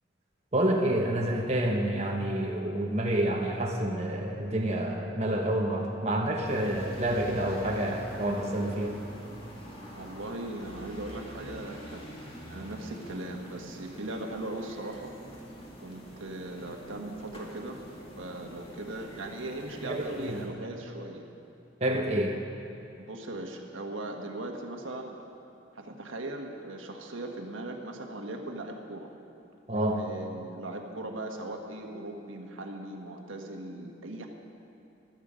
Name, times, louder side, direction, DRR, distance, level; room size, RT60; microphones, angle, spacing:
voice 1, 0.5-9.0 19.9-20.4 21.8-22.4 29.7-30.0, right 1 dB, 35° right, 0 dB, 1.1 m, -28 dB
sound 1, 6.4-20.5, equal, 30° left, 2.2 m, -46 dB
voice 2, 9.9-15.2 15.8-17.8 18.2-21.2 23.0-25.2 25.7-29.1 30.0-34.3, right 2 dB, 80° right, 2 dB, 1.5 m, -39 dB
15.5 x 12.5 x 5.1 m, 2.9 s
head